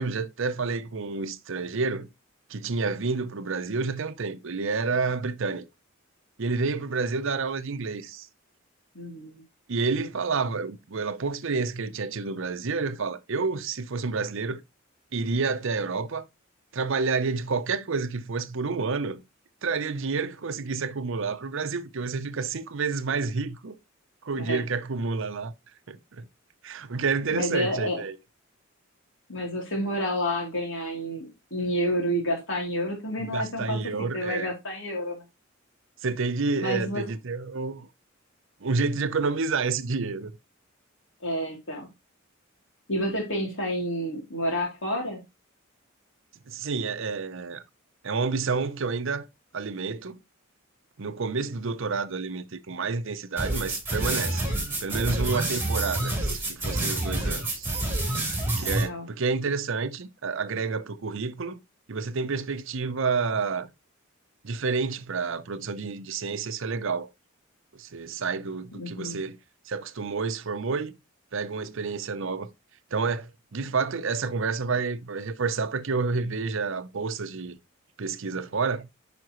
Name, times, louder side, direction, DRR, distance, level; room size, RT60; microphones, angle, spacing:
voice 1, 0.0-2.1 2.5-5.6 6.4-8.3 9.7-14.6 15.1-16.3 16.7-19.2 19.6-23.8 24.2-25.5 25.9-26.3 26.6-28.2 33.3-34.5 36.0-37.9 38.6-40.3 46.5-47.6 48.0-49.3 49.5-50.2 51.0-54.5 54.8-57.7 58.6-61.6 61.9-63.7 64.4-67.1 67.7-69.4 69.6-70.9 71.3-72.5 72.9-77.6 78.0-78.9, right 4 dB, 65° right, 0.7 m, -29 dB
voice 2, 8.9-9.4 24.4-24.6 27.3-28.0 29.3-35.2 36.6-37.0 41.2-41.9 42.9-45.2 58.5-59.1 68.7-69.2, equal, 65° left, 3.0 m, -29 dB
sound 1, 53.4-58.8, right 1 dB, 10° right, 3.4 m, -28 dB
9.6 x 5.1 x 3.0 m
head